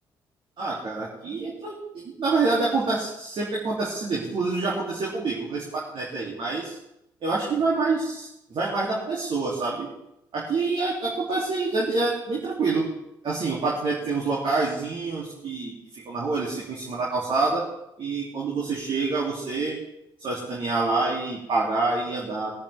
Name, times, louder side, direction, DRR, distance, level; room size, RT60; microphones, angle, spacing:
voice 1, 0.6-6.8 7.2-9.9 10.3-12.9 13.2-17.6 18.0-19.8 20.2-22.5, right 3 dB, 45° right, -5 dB, 2.8 m, -27 dB
21.5 x 10.5 x 3.5 m, 0.84 s
figure-of-eight pair, 45°, 12 cm